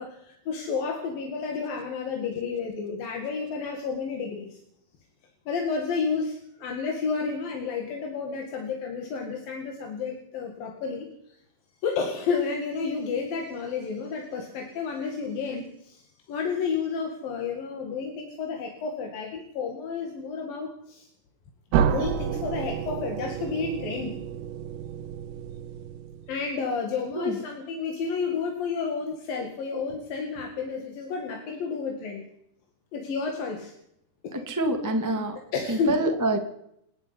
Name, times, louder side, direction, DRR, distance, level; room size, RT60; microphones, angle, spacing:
voice 1, 0.0-4.6 5.5-11.4 11.8-21.1 21.8-24.2 26.3-32.2 32.9-33.7 34.2-34.4 35.5-36.0, left 5 dB, 60° left, 3 dB, 3.7 m, -31 dB
sound 1, 21.7-26.5, right 8 dB, 80° right, 3.5 m, -30 dB
voice 2, 34.3-35.4 35.7-36.4, right 2 dB, 10° right, 4 dB, 1.2 m, -26 dB
29.0 x 9.6 x 9.8 m, 0.75 s
omnidirectional pair, 5.0 m